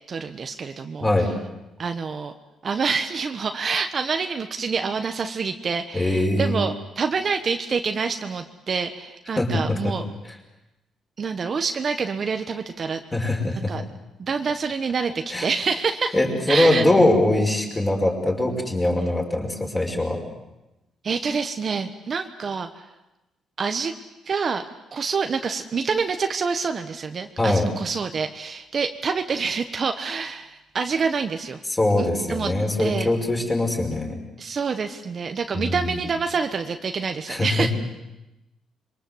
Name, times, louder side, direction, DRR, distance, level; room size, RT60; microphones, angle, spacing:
voice 1, 0.1-1.3 1.8-2.3 2.6-10.0 11.2-13.0 13.7-13.8 14.2-16.2 16.5-16.8 21.0-22.8 23.6-23.9 24.2-24.6 24.9-31.6 32.0-32.5 32.8-33.1 34.4-37.7, right 5 dB, 40° right, 7 dB, 1.2 m, -27 dB
voice 2, 5.9-6.7 9.4-9.9 13.1-13.6 15.3-15.5 16.1-20.2 27.4-27.7 31.7-34.2 35.5-35.9 37.3-37.7, left 1 dB, 15° left, 1 dB, 5.5 m, -22 dB
26.5 x 23.5 x 8.0 m, 0.97 s
cardioid pair, 120°, 0 cm